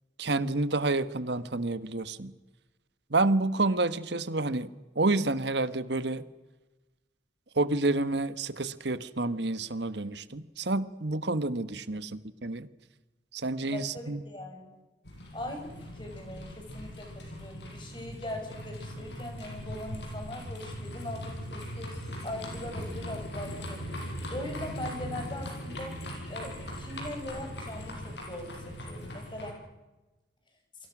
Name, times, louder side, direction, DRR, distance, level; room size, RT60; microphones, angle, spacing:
voice 1, 0.2-2.3 3.1-4.7 4.9-6.2 7.6-12.7 13.3-14.2, right 2 dB, 70° right, 14 dB, 1.3 m, -29 dB
voice 2, 13.7-14.7 15.3-22.0 22.2-24.0 24.3-25.9 26.3-29.6, left 1 dB, 25° left, 4 dB, 5.4 m, -41 dB
sound 1, 15.0-29.5, equal, 70° left, 7.1 m, -40 dB
28.5 x 23.5 x 6.2 m, 1.1 s
head